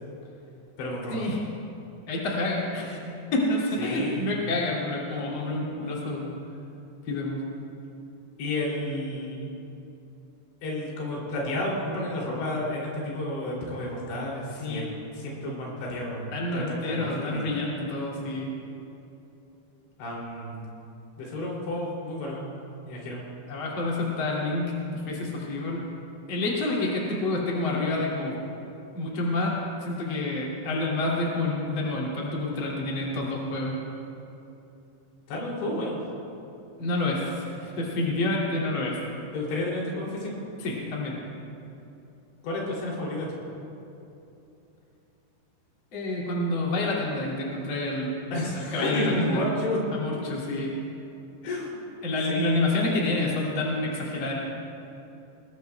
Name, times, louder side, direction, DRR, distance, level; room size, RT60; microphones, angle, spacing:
voice 1, 0.8-1.3 3.8-4.3 8.4-9.5 10.6-14.9 15.1-16.3 16.5-17.6 20.0-20.7 21.2-22.5 22.9-23.2 35.3-36.0 39.3-40.4 42.4-43.5 48.3-49.8 51.4-51.8 52.3-52.6, left 1 dB, 90° left, -3 dB, 5.4 m, -31 dB
voice 2, 2.1-6.3 7.0-7.4 14.6-14.9 16.3-18.5 23.5-25.8 26.3-28.3 28.9-29.6 29.8-33.8 36.8-39.0 40.6-41.2 45.9-48.1 48.5-49.4 49.9-50.7 52.0-54.3, left 2 dB, 35° left, -4 dB, 2.8 m, -28 dB
22.0 x 20.0 x 2.3 m, 2.9 s
omnidirectional pair, 5.0 m